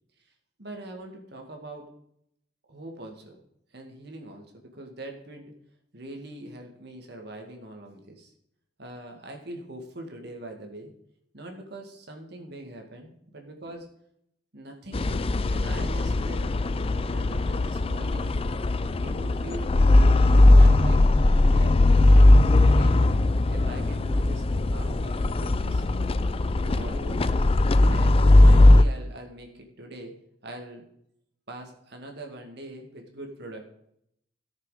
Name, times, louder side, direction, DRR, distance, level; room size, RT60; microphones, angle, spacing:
voice 1, 0.6-1.8 2.7-3.4 3.7-5.5 5.9-8.3 8.8-10.9 11.3-13.9 14.5-18.3 18.9-19.7 20.1-22.3 22.6-23.0 23.5-25.9 26.6-27.5 27.9-30.1 30.4-30.8 31.5-33.7, right 1 dB, 65° right, 2 dB, 2.1 m, -42 dB
sound 1, 14.9-28.8, left 2 dB, 30° left, 0.4 m, -19 dB
14.0 x 6.7 x 5.0 m, 0.73 s
head